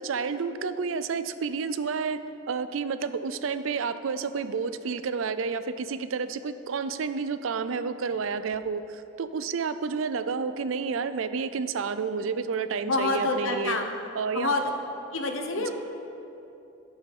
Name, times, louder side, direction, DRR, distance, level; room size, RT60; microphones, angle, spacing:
voice 1, 0.0-2.2 2.5-13.8 14.2-14.5 15.6-15.7, right 5 dB, 75° right, 12 dB, 0.4 m, -30 dB
voice 2, 12.8-13.9 14.3-14.6 15.1-15.7, left 3 dB, 75° left, 4 dB, 1.0 m, -27 dB
13.0 x 5.6 x 5.4 m, 2.9 s
head